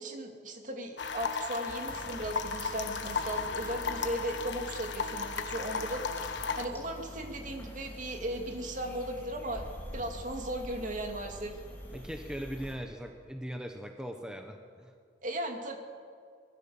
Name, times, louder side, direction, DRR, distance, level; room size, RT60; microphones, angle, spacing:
voice 1, 0.0-9.6 9.9-11.5 15.2-15.8, right 1 dB, 45° right, 3 dB, 2.7 m, -37 dB
sound 1, 1.0-6.7, left 5 dB, 75° left, 1.4 m, -35 dB
sound 2, 1.9-12.8, equal, 10° left, 4.3 m, -46 dB
voice 2, 11.9-14.9, equal, 5° right, 4 dB, 1.2 m, -40 dB
24.5 x 20.5 x 7.3 m, 2.3 s
head